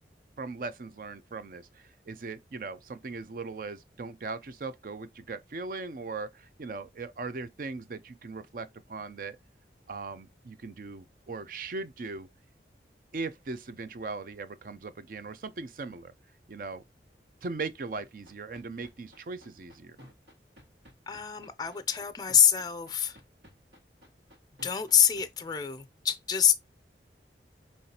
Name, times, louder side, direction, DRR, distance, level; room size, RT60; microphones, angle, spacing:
voice 1, 0.4-9.4 9.9-12.3 13.1-16.1 16.5-16.8 17.4-20.0, right 3 dB, 50° right, 0.4 m, -39 dB
sound 1, 17.8-25.2, equal, 85° right, 1.8 m, -53 dB
voice 2, 21.1-23.2 24.6-26.6, left 8 dB, 20° left, 0.4 m, -25 dB
5.6 x 3.2 x 2.8 m
head